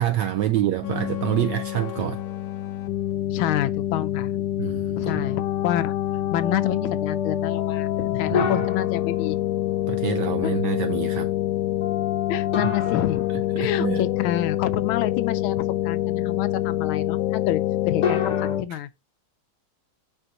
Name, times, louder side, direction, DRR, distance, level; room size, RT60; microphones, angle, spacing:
voice 1, 0.0-2.2 4.6-5.3 8.3-8.6 9.9-11.3 13.6-14.0 18.7-18.8, right 12 dB, 75° right, 1.0 m, -27 dB
sound 1, 0.8-18.6, left 13 dB, 70° left, 1.1 m, -26 dB
sound 2, 1.7-2.6 3.1-3.2 5.1-6.0 8.3-9.9 12.5-13.9 18.0-18.6, left 6 dB, 50° left, 2.5 m, -31 dB
voice 2, 3.3-4.4 5.0-5.9 6.3-9.4 10.4-10.5 12.3-13.2 13.6-17.6 17.9-18.9, left 11 dB, 85° left, 1.5 m, -28 dB
8.7 x 4.4 x 2.9 m
omnidirectional pair, 2.2 m